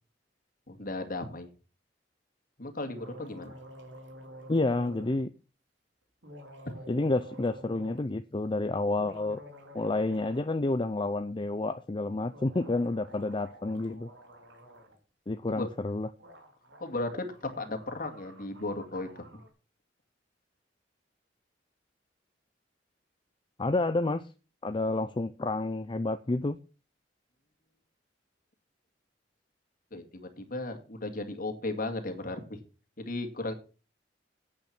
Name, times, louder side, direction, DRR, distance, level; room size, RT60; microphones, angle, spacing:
voice 1, 0.7-1.5 2.6-3.5 15.5-15.7 16.8-17.3 17.6-19.4 29.9-32.6 33.0-33.5, left 2 dB, 50° left, 6 dB, 2.3 m, -35 dB
sound 1, 3.0-5.2 6.2-8.0 8.8-10.5 10.7-10.8 12.3-15.0 15.9-16.0 16.2-19.5, right 1 dB, 80° right, 3.3 m, -50 dB
voice 2, 4.5-5.3 6.9-9.4 9.7-14.1 15.3-16.1 23.6-24.2 24.6-26.6, left 2 dB, 25° left, 11 dB, 0.5 m, -29 dB
9.1 x 8.5 x 6.0 m, 0.34 s
head